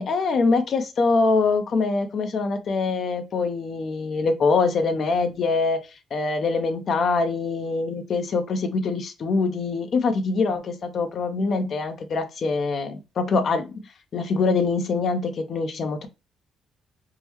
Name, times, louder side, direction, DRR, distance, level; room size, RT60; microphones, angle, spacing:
voice 1, 0.0-5.8 6.1-13.7 14.1-16.1, left 4 dB, 55° left, 0.5 m, -24 dB
3.6 x 2.1 x 3.0 m
cardioid pair, 90°, 0 cm